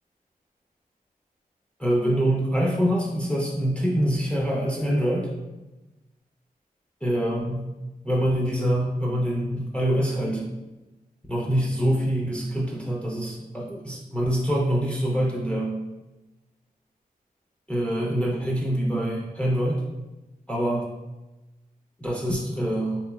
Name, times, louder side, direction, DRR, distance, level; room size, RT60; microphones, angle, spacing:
voice 1, 1.8-5.3 7.0-7.6 8.0-10.5 11.3-15.8 17.7-19.8 20.5-20.9 22.0-23.0, equal, 10° left, -4 dB, 0.5 m, -25 dB
3.6 x 2.9 x 2.3 m, 1.1 s
wide cardioid pair, 95°, 15 cm